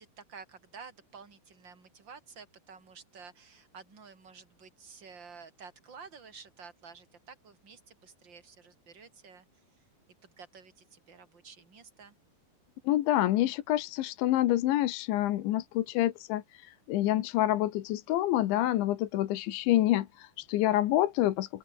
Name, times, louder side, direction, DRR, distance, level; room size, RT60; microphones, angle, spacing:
voice 1, 0.0-9.5 10.2-12.1, right 5 dB, 25° right, 4.3 m, -51 dB
voice 2, 12.9-21.6, left 14 dB, 80° left, 3.6 m, -27 dB
open air
omnidirectional pair, 5.4 m